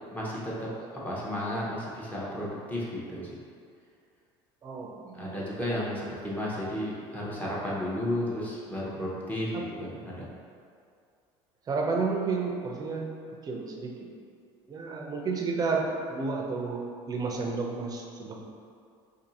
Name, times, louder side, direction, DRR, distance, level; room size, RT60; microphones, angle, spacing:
voice 1, 0.1-3.3 5.1-10.2, left 1 dB, 15° left, -6 dB, 0.8 m, -33 dB
voice 2, 4.6-5.3 9.5-9.6 11.7-13.1 13.4-14.1 14.7-18.4, right 4 dB, 30° right, 0 dB, 0.5 m, -31 dB
2.6 x 2.6 x 4.0 m, 2.3 s
supercardioid pair, 105°, 12 cm